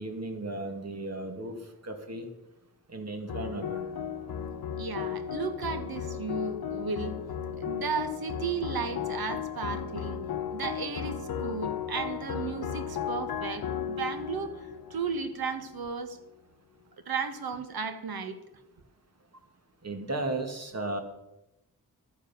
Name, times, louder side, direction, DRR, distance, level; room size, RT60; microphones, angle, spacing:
voice 1, 0.0-1.5 1.8-2.3 2.9-3.9 19.8-21.0, right 2 dB, 45° right, 5 dB, 2.2 m, -35 dB
sound 1, 3.3-15.8, left 8 dB, 75° left, 0.9 m, -35 dB
voice 2, 4.8-7.1 7.6-10.2 10.5-16.2 17.0-18.4, right 5 dB, 80° right, 9 dB, 1.5 m, -34 dB
12.5 x 10.0 x 7.1 m, 0.92 s
wide cardioid pair, 130°, 36 cm